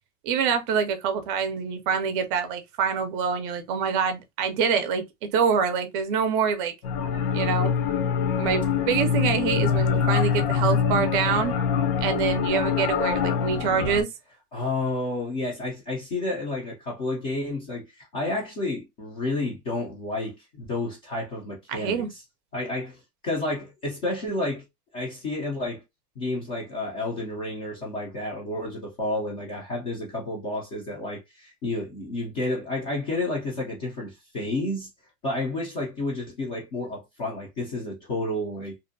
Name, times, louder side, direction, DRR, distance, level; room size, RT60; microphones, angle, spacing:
voice 1, 0.2-6.7 7.3-7.7 8.4-11.6 12.0-14.1 21.7-22.1, right 6 dB, 35° right, 0.5 m, -25 dB
sound 1, 6.8-14.0, left 7 dB, 70° left, 0.8 m, -24 dB
voice 2, 14.5-22.2 22.5-24.6 24.9-25.8 26.2-34.9 35.2-38.8, left 2 dB, 25° left, 0.4 m, -30 dB
2.5 x 2.1 x 2.5 m
supercardioid pair, 145°, 47 cm